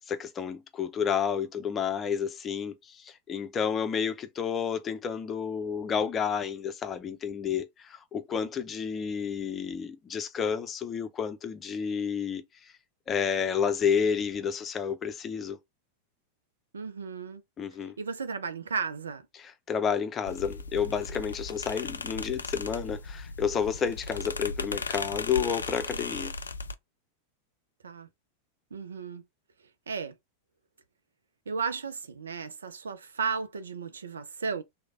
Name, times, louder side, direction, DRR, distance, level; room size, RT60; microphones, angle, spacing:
voice 1, 0.1-12.7 13.1-15.6 17.6-18.0 19.3-26.3, left 7 dB, 25° left, 0.6 m, -30 dB
voice 2, 16.7-17.4 18.0-19.2 27.8-28.1 28.7-29.2 29.9-30.1 31.5-34.6, right 5 dB, 70° right, 0.5 m, -34 dB
sound 1, 20.3-26.7, left 3 dB, 75° left, 0.3 m, -37 dB
3.1 x 2.1 x 3.7 m
figure-of-eight pair, 90°, 0 cm